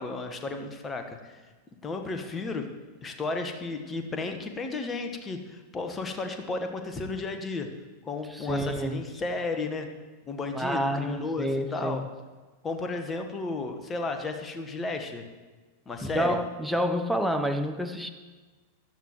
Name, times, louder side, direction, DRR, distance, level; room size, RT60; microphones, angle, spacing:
voice 1, 0.0-1.4 1.8-2.7 3.0-7.7 8.0-9.9 10.3-12.0 12.6-15.2 15.9-16.4, left 3 dB, 20° left, 1.3 m, -33 dB
voice 2, 8.3-9.0 10.5-12.1 16.0-18.1, equal, ahead, 0.7 m, -28 dB
16.5 x 12.0 x 3.1 m
figure-of-eight pair, 90°, 0 cm